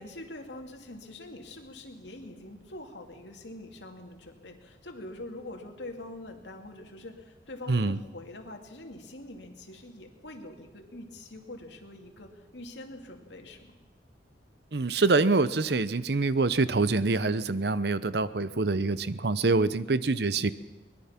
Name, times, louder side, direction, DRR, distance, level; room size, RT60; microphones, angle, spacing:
voice 1, 0.0-13.7, left 1 dB, 90° left, 4 dB, 2.6 m, -44 dB
voice 2, 7.7-8.0 14.7-20.5, right 3 dB, 65° right, 15 dB, 0.8 m, -25 dB
23.0 x 20.5 x 5.9 m, 1.1 s
head